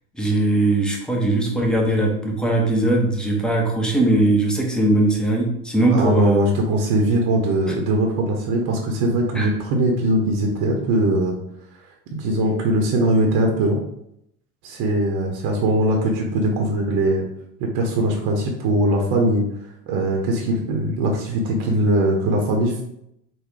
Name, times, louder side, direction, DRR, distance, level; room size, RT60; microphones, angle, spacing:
voice 1, 0.1-6.5 9.3-9.5, right 2 dB, ahead, 0 dB, 0.5 m, -20 dB
voice 2, 5.9-11.3 12.1-13.8 14.6-17.2 17.6-19.4 19.9-22.8, right 1 dB, 45° right, 1 dB, 0.8 m, -21 dB
3.8 x 2.2 x 3.2 m, 0.76 s
hypercardioid pair, 90°, 48 cm